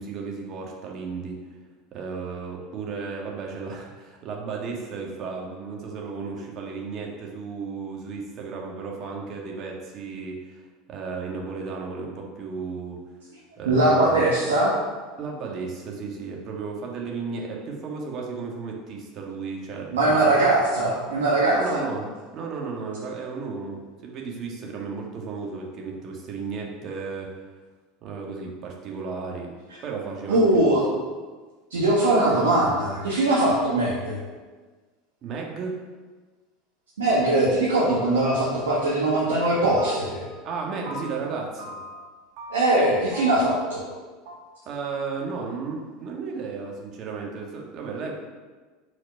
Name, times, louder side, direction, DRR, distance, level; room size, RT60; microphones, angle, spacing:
voice 1, 0.0-1.4 1.9-10.6 10.9-13.0 13.6-14.2 15.2-20.4 21.5-27.3 28.0-29.5 29.8-30.7 35.2-35.8 40.4-41.8 44.6-48.1, right 4 dB, 45° right, 0 dB, 1.5 m, -34 dB
voice 2, 13.6-14.7 19.9-21.8 30.3-30.9 31.7-34.2 37.0-40.3 42.5-43.8, right 2 dB, 90° right, -6 dB, 1.4 m, -21 dB
sound 1, 37.9-38.4 38.7-39.2 39.4-41.1 41.6-42.1 42.4-42.8 43.1-43.9 44.2-44.4, equal, 65° right, 1.3 m, -40 dB
5.2 x 4.2 x 5.3 m, 1.4 s
hypercardioid pair, 90°, 0 cm